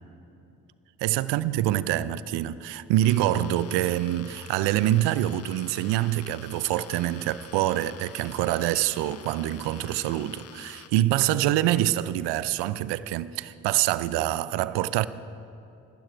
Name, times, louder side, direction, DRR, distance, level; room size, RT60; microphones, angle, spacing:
voice 1, 1.0-15.1, right 13 dB, 65° right, 0.6 m, -25 dB
sound 1, 3.0-10.9, left 9 dB, 35° left, 0.6 m, -48 dB
18.5 x 12.0 x 4.6 m
hypercardioid pair, 45°, 44 cm